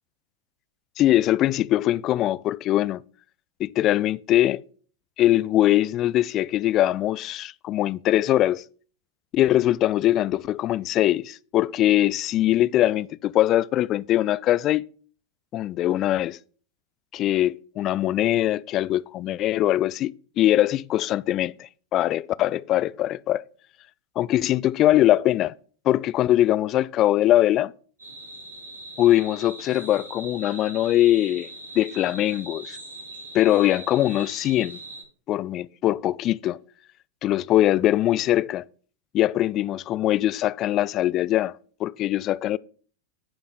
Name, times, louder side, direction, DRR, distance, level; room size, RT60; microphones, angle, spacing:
voice 1, 1.0-3.0 3.6-4.6 5.2-8.6 9.3-14.8 15.5-16.4 17.1-23.4 24.2-25.5 25.8-27.7 29.0-31.5 31.8-32.8 33.3-34.8 35.3-36.6 37.2-38.6 39.1-41.5 41.8-42.6, left 13 dB, 35° left, 0.3 m, -22 dB
sound 1, 28.0-35.0, right 2 dB, 75° right, 2.2 m, -41 dB
13.5 x 5.2 x 3.7 m
figure-of-eight pair, 90°, 0 cm